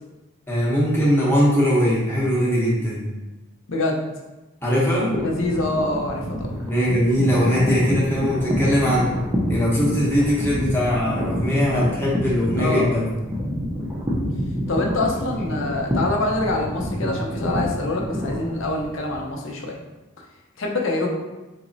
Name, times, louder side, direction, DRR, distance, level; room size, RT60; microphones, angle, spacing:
voice 1, 0.5-3.1 4.6-5.1 6.6-9.1 9.5-13.1, equal, 10° left, -6 dB, 0.8 m, -20 dB
voice 2, 3.7-4.0 5.2-6.5 12.6-12.9 14.7-19.8 20.6-21.1, left 2 dB, 60° left, 0 dB, 0.6 m, -25 dB
sound 1, 5.1-19.2, equal, 10° right, 0.5 m, -27 dB
4.0 x 3.0 x 2.6 m, 1.1 s
head